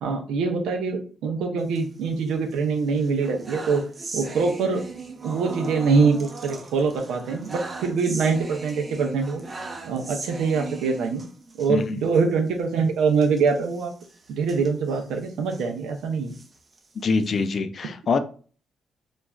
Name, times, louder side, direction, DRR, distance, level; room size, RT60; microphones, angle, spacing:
voice 1, 0.0-3.8 4.1-4.9 5.2-9.4 9.9-11.2 11.6-13.9 14.3-16.3, right 4 dB, 90° right, 0.5 m, -24 dB
sound 1, 1.6-2.5 2.9-11.7 12.1-12.2 12.5-12.6 13.1-15.7 16.2-17.6, right 3 dB, 35° right, 0.5 m, -38 dB
voice 2, 11.7-12.0 17.0-18.2, left 4 dB, 50° left, 0.4 m, -24 dB
3.1 x 2.4 x 2.3 m
cardioid pair, 100°, 0 cm